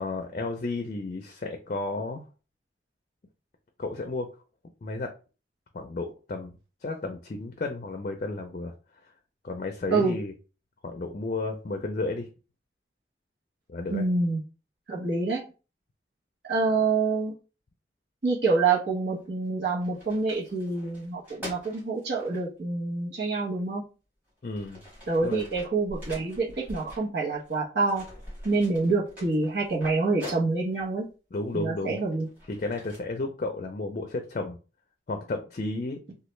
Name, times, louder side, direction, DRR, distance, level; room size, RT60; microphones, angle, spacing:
voice 1, 0.0-2.2 3.8-4.3 4.8-5.1 5.7-8.7 9.4-10.3 10.8-12.3 13.7-14.0 24.4-24.8 25.2-25.4 31.3-32.0 32.5-34.6 35.1-36.0, left 2 dB, 45° left, 5 dB, 0.4 m, -32 dB
voice 2, 13.9-14.4 14.9-15.4 16.5-17.3 18.2-23.9 25.1-28.0 28.4-31.1 31.5-32.3, right 3 dB, 70° right, -3 dB, 0.9 m, -27 dB
sound 1, 19.2-19.5 19.8-22.4 23.6-23.7 24.3-27.6 27.9-30.9 31.5-33.0, left 1 dB, 10° right, 1.6 m, -44 dB
3.2 x 2.3 x 3.1 m, 0.33 s
head